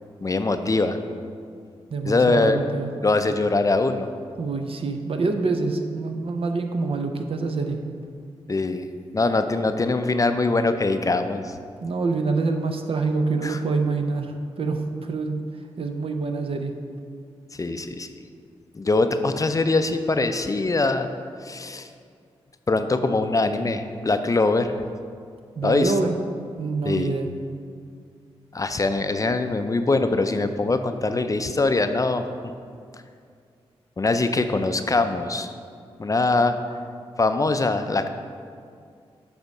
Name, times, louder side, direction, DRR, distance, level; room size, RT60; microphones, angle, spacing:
voice 1, 0.2-1.0 2.0-2.6 3.0-4.1 8.5-8.9 9.1-11.6 13.4-13.6 17.6-18.1 18.8-21.1 21.4-21.9 22.7-24.7 25.6-25.9 26.8-27.1 28.5-32.2 34.0-35.5 36.0-36.6 37.2-38.1, left 3 dB, 30° left, 8 dB, 0.5 m, -22 dB
voice 2, 1.9-2.9 4.4-7.8 11.8-15.4 15.8-16.7 25.5-26.1 26.6-27.3, right 3 dB, 55° right, 5 dB, 0.7 m, -26 dB
7.9 x 3.5 x 5.3 m, 2.3 s
supercardioid pair, 45°, 11 cm